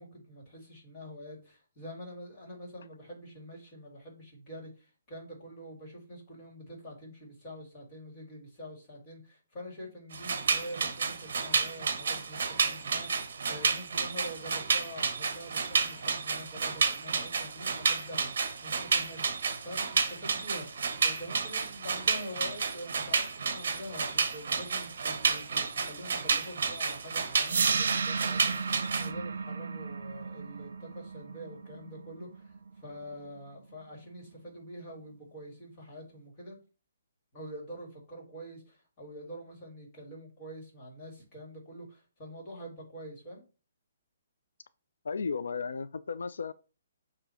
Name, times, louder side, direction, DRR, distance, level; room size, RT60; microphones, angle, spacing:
voice 1, 0.0-18.3 18.6-32.5 32.8-36.6 37.3-43.4, equal, 20° left, 2.0 m, -45 dB
sound 1, 10.1-29.1, right 5 dB, 50° right, 1.2 m, -31 dB
sound 2, 27.4-33.5, right 5 dB, 75° right, 0.8 m, -34 dB
voice 2, 45.0-46.5, left 5 dB, 85° left, 0.4 m, -34 dB
6.9 x 2.8 x 5.6 m
hypercardioid pair, 175°, 0 cm